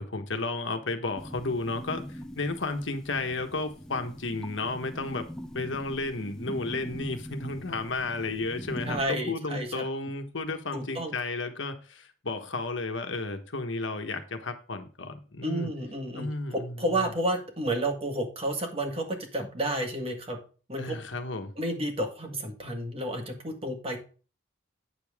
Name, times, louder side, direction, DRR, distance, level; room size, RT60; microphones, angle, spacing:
voice 1, 0.0-5.3 5.5-15.7 16.1-17.1 20.8-21.5, left 3 dB, 70° left, 1.3 m, -33 dB
sound 1, 1.2-9.0, equal, 5° left, 0.7 m, -42 dB
voice 2, 8.8-9.8 10.7-11.1 15.4-20.4 20.7-21.0 21.6-24.0, right 1 dB, 30° right, 1.8 m, -31 dB
9.0 x 7.0 x 3.5 m
head